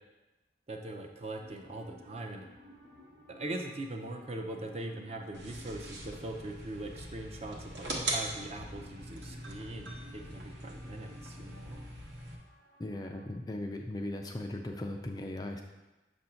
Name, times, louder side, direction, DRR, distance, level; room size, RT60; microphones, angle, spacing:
voice 1, 0.7-2.5 3.3-11.8, right 2 dB, 35° right, 3 dB, 0.5 m, -41 dB
sound 1, 1.4-13.3, left 1 dB, 85° right, 1.3 m, -57 dB
sound 2, 5.3-12.4, right 1 dB, 70° right, 0.9 m, -41 dB
voice 2, 12.8-15.6, left 1 dB, 20° left, 3 dB, 0.3 m, -38 dB
6.7 x 2.6 x 5.6 m, 1.1 s
head